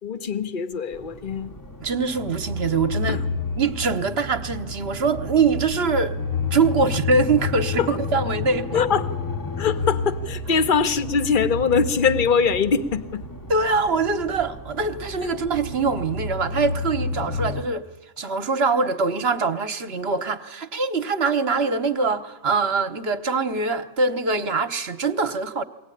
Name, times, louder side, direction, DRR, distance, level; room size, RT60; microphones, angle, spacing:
voice 1, 0.0-1.5 3.1-3.2 7.8-8.0 8.7-9.1 9.6-13.2, left 6 dB, 40° left, 1.1 m, -22 dB
sound 1, 0.9-17.6, left 3 dB, 15° left, 0.9 m, -30 dB
voice 2, 1.8-3.2 3.5-6.2 6.5-8.7 13.5-17.8 18.2-25.6, right 4 dB, 55° right, 1.3 m, -23 dB
22.5 x 17.5 x 9.9 m
omnidirectional pair, 1.3 m